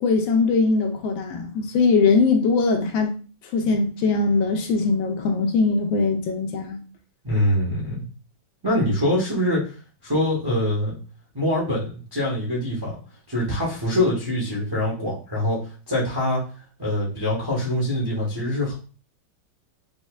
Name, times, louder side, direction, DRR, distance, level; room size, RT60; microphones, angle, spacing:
voice 1, 0.0-3.1 3.5-6.8, left 4 dB, 80° left, 1.3 m, -21 dB
voice 2, 7.2-8.0 8.6-9.7 10.0-11.0 11.3-13.0 13.3-16.4 16.8-18.8, left 1 dB, 35° right, 0.4 m, -24 dB
5.3 x 2.1 x 2.3 m
omnidirectional pair, 2.2 m